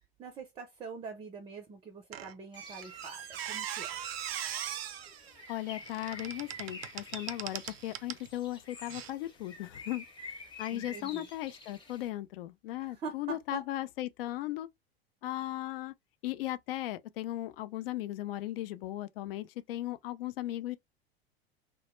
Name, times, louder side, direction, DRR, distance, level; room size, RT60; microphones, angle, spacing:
voice 1, 0.2-4.0 10.7-11.3 12.8-13.6, right 4 dB, 15° right, 0.5 m, -44 dB
Squeak, 2.1-8.3 8.9-9.1, right 11 dB, 70° right, 0.5 m, -40 dB
Bird, 2.5-12.1, left 3 dB, 15° left, 0.8 m, -49 dB
voice 2, 5.5-14.7 15.2-15.9 16.2-20.8, left 15 dB, 60° left, 0.4 m, -37 dB
2.1 x 2.0 x 3.0 m
figure-of-eight pair, 90°, 32 cm